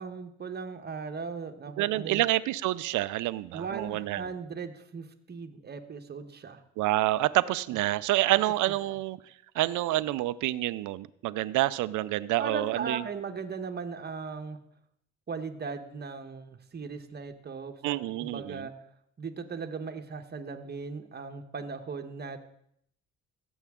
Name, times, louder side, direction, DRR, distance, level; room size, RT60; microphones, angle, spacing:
voice 1, 0.0-2.2 3.5-6.6 8.9-9.0 12.4-14.6 15.3-18.7 19.2-22.4, right 5 dB, 35° right, 7 dB, 1.0 m, -38 dB
voice 2, 1.8-4.3 6.8-9.2 9.5-13.0 17.8-18.7, right 16 dB, 80° right, 16 dB, 0.4 m, -28 dB
15.5 x 7.1 x 3.6 m, 0.71 s
cardioid pair, 90°, 30 cm